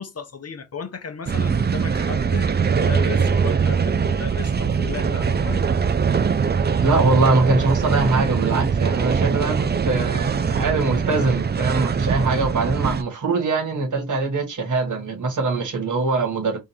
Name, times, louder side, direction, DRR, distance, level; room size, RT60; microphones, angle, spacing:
voice 1, 0.0-5.6, left 6 dB, 45° left, 0.8 m, -35 dB
sound 1, 1.3-13.0, right 6 dB, 30° right, 0.4 m, -22 dB
voice 2, 6.8-16.6, right 3 dB, 60° right, 1.8 m, -22 dB
3.7 x 2.5 x 4.4 m
wide cardioid pair, 100°, 34 cm